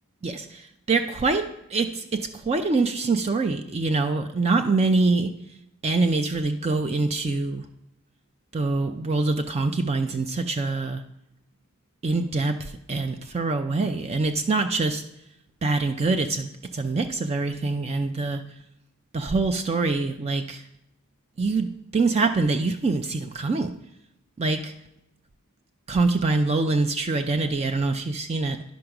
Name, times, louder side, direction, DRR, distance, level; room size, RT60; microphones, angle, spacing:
voice 1, 0.2-5.4 5.8-7.7 8.5-11.0 12.0-15.1 15.6-18.4 19.1-20.7 21.4-23.8 24.4-24.7 25.9-28.6, right 3 dB, 30° right, 0.4 m, -25 dB
10.5 x 5.0 x 5.9 m
head